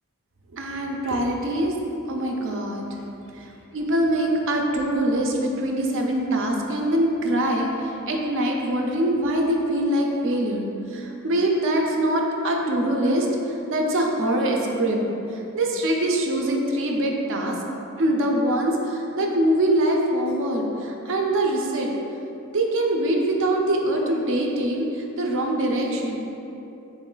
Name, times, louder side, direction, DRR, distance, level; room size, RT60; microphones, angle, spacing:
voice 1, 0.5-1.7 2.1-2.8 3.3-3.5 3.7-10.7 10.9-15.0 15.3-17.6 18.0-21.9 22.5-26.2, right 1 dB, 60° right, 1 dB, 0.5 m, -23 dB
4.1 x 3.1 x 3.8 m, 3.0 s
head